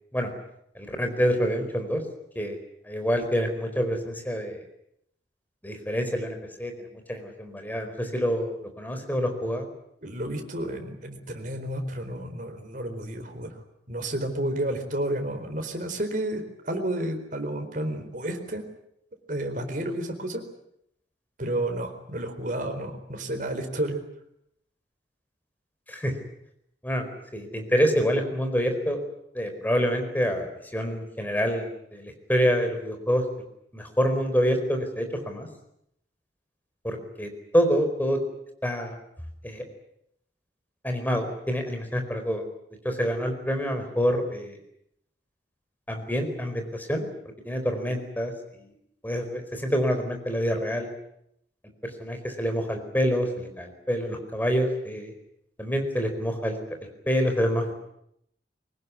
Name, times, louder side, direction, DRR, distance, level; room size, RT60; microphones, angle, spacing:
voice 1, 0.7-2.0 2.3-2.6 2.9-4.6 5.6-9.7 25.9-26.2 26.8-29.0 29.3-33.2 33.7-35.5 36.8-38.2 38.6-38.9 39.4-39.6 40.8-42.4 42.8-44.6 45.9-47.1 47.4-48.7 49.0-50.9 51.8-55.1 55.6-56.6 57.1-57.7, equal, 10° left, 5 dB, 4.6 m, -27 dB
voice 2, 10.0-13.6 13.9-18.6 19.3-20.4 21.4-24.0, right 1 dB, 45° right, 5 dB, 4.4 m, -31 dB
24.0 x 19.5 x 9.7 m, 0.76 s
head